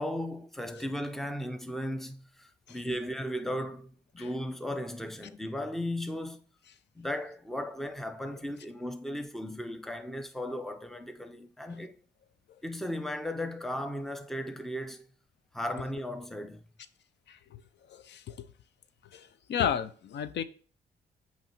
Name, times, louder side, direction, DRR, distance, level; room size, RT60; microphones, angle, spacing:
voice 1, 0.0-6.4 6.9-12.0 12.6-15.1 15.5-16.6, left 1 dB, ahead, 0.6 m, -36 dB
voice 2, 17.3-17.6 17.9-18.5 19.1-20.4, left 8 dB, 70° left, 0.5 m, -33 dB
8.2 x 3.1 x 4.3 m
cardioid pair, 115°, 19 cm